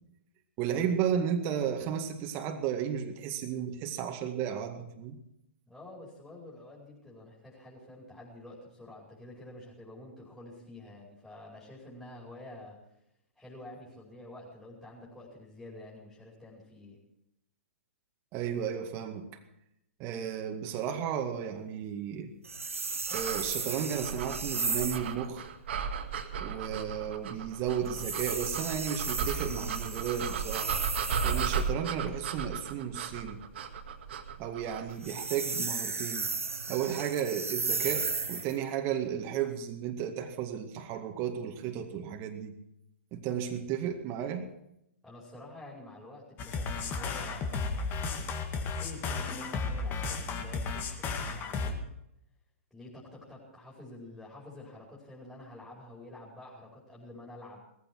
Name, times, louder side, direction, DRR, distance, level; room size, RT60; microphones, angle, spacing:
voice 1, 0.6-5.2 18.3-19.3 20.0-22.3 23.1-25.5 26.4-30.8 31.2-33.4 34.4-36.3 36.7-42.5 43.1-44.5, right 8 dB, 35° right, 4 dB, 2.1 m, -33 dB
voice 2, 5.7-12.8 13.4-17.0 45.0-48.2 48.5-51.8 52.7-57.6, left 1 dB, 5° left, -6 dB, 5.0 m, -49 dB
sound 1, 22.4-25.1 27.9-31.7 34.9-38.6, right 4 dB, 85° right, 0.9 m, -35 dB
sound 2, 23.1-35.0, right 6 dB, 55° right, 2.1 m, -35 dB
sound 3, 46.4-51.7, left 4 dB, 25° left, 2.1 m, -34 dB
19.0 x 15.0 x 4.7 m, 0.80 s
figure-of-eight pair, 120°, 7 cm